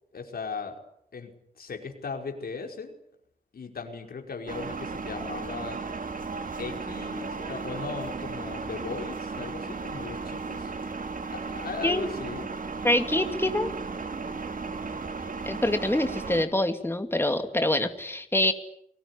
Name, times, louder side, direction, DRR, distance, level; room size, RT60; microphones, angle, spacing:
voice 1, 0.1-0.8 1.1-1.3 1.6-3.0 3.5-5.8 6.6-10.7 11.3-12.5, left 5 dB, 85° left, 3 dB, 5.2 m, -37 dB
sound 1, 4.5-16.4, right 4 dB, 65° right, 3.0 m, -35 dB
voice 2, 12.8-13.7 15.5-18.5, left 1 dB, 15° left, 7 dB, 2.5 m, -25 dB
29.5 x 20.0 x 10.0 m, 0.71 s
cardioid pair, 65°, 15 cm